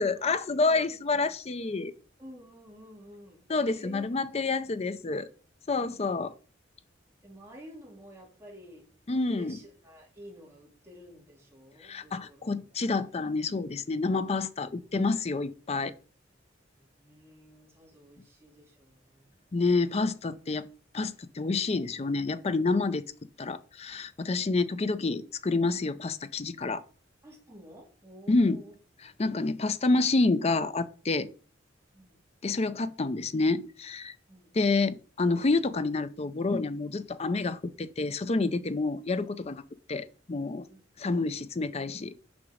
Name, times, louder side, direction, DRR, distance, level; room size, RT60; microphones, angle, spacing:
voice 1, 0.0-1.9 3.5-5.3 5.7-6.3 9.1-9.6 11.8-15.9 19.5-20.7 20.9-23.0 23.4-26.8 28.3-28.6 29.0-31.3 32.4-34.2 34.5-39.6 39.9-40.7 41.0-42.2, left 3 dB, 35° left, 0.5 m, -28 dB
voice 2, 2.2-4.0 7.2-8.9 9.3-12.7 16.7-19.4 27.2-28.7 31.9-32.2 34.3-34.5 40.7-40.8, equal, 15° right, 2.8 m, -51 dB
6.9 x 5.1 x 5.0 m
head